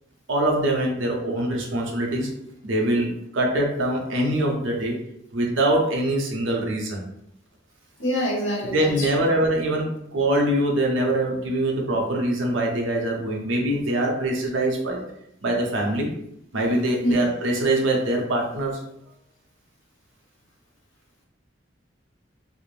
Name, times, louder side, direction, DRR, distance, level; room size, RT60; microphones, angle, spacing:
voice 1, 0.3-2.3 2.6-5.0 5.3-7.0 8.7-15.0 15.4-16.1 16.5-18.8, right 1 dB, 80° right, 0 dB, 0.6 m, -23 dB
voice 2, 8.0-9.0 17.0-17.1, equal, 70° left, -2 dB, 0.8 m, -25 dB
2.5 x 2.0 x 3.1 m, 0.76 s
head